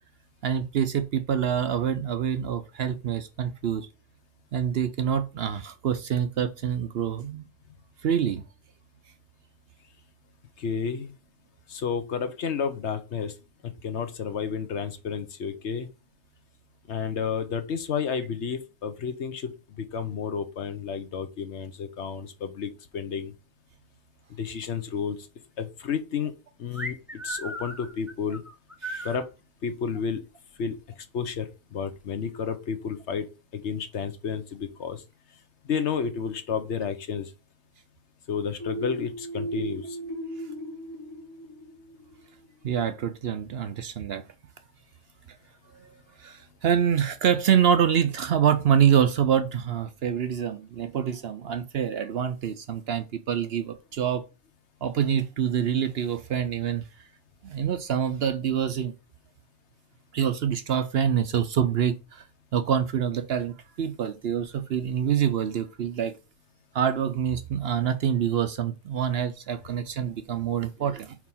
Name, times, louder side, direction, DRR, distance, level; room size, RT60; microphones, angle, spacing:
voice 1, 0.4-3.9 4.5-7.5 8.0-8.4 28.8-29.1 42.6-44.2 46.2-54.2 54.8-56.8 57.4-58.9 60.1-62.2 62.5-66.1 66.7-71.2, right 8 dB, 60° right, 0.8 m, -26 dB
voice 2, 10.6-11.1 11.7-13.3 13.6-15.9 16.9-23.3 24.4-25.2 25.6-26.3 26.6-27.0 27.2-28.4 29.0-29.2 29.6-30.2 30.6-30.8 31.1-33.3 33.5-35.0 35.6-37.3 38.3-40.0, left 6 dB, 65° left, 1.1 m, -31 dB
sound 1, 26.7-29.2, right 1 dB, ahead, 0.7 m, -36 dB
sound 2, 38.6-42.3, right 2 dB, 20° left, 1.0 m, -36 dB
4.8 x 4.6 x 5.6 m
omnidirectional pair, 1.3 m